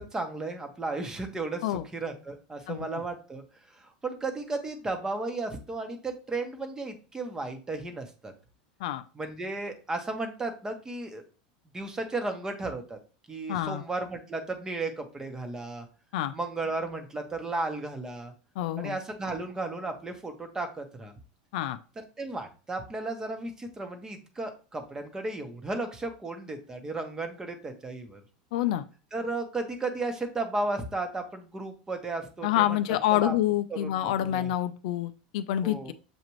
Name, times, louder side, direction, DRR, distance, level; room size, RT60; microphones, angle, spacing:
voice 1, 0.0-3.4 3.7-8.3 9.1-11.2 11.7-13.0 13.3-15.8 16.3-18.3 18.8-21.1 22.0-28.2 29.1-33.3 33.7-34.5 35.6-35.9, right 2 dB, 15° right, 6 dB, 0.9 m, -34 dB
voice 2, 13.5-13.8 16.1-16.3 18.6-19.0 21.5-21.8 28.5-28.8 32.4-35.9, left 13 dB, 70° left, 11 dB, 0.4 m, -27 dB
6.9 x 2.5 x 3.0 m, 0.35 s
supercardioid pair, 115°, 4 cm